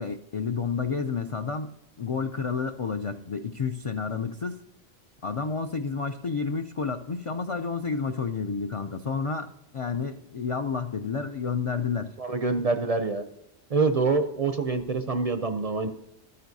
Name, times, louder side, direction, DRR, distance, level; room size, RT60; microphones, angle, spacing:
voice 1, 0.0-1.7 2.0-4.6 5.2-12.1, left 5 dB, 60° left, 7 dB, 0.3 m, -30 dB
voice 2, 12.2-13.2 13.7-15.9, right 4 dB, 45° right, 8 dB, 0.5 m, -26 dB
12.5 x 9.4 x 2.7 m, 0.85 s
omnidirectional pair, 1.1 m